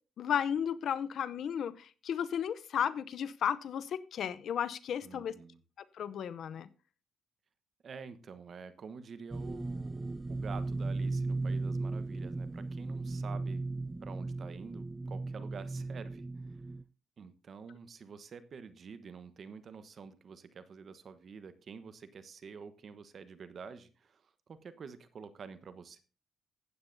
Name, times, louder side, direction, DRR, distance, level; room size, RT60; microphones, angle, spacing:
voice 1, 0.2-5.3 5.9-6.7, left 8 dB, 65° left, 0.6 m, -34 dB
voice 2, 5.0-5.6 7.8-13.6 14.0-16.6 17.2-26.0, right 5 dB, 50° right, 1.1 m, -48 dB
sound 1, 9.3-16.8, right 3 dB, 15° right, 0.4 m, -36 dB
15.0 x 8.9 x 2.7 m
cardioid pair, 90°, 0 cm